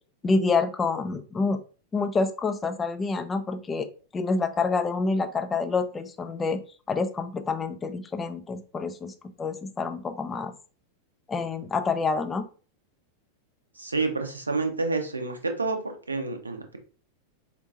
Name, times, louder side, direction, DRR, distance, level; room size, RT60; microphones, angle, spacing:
voice 1, 0.2-1.6 1.9-3.9 4.1-6.6 6.9-9.1 9.4-10.5 11.3-12.5, left 4 dB, 15° left, 8 dB, 0.4 m, -27 dB
voice 2, 13.8-16.8, right 3 dB, 80° right, 5 dB, 0.6 m, -29 dB
4.4 x 2.6 x 2.4 m, 0.38 s
figure-of-eight pair, 90°, 0 cm